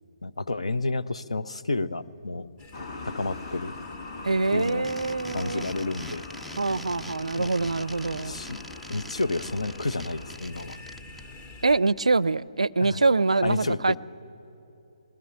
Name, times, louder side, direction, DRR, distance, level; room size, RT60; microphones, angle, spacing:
voice 1, 0.2-2.5 3.0-3.8 4.5-4.9 5.3-6.3 7.4-7.7 8.2-8.6 8.9-10.8 12.8-13.0 13.4-14.0, left 2 dB, 70° left, 0.7 m, -30 dB
sound 1, 2.6-11.8, left 3 dB, 20° left, 1.0 m, -47 dB
sound 2, 2.7-10.4, left 3 dB, 50° left, 1.5 m, -42 dB
voice 2, 4.2-5.6 6.5-8.4 11.6-14.0, right 3 dB, 75° right, 0.4 m, -24 dB
sound 3, 4.5-11.2, equal, ahead, 0.4 m, -44 dB
20.5 x 16.5 x 9.0 m
figure-of-eight pair, 140°, 3 cm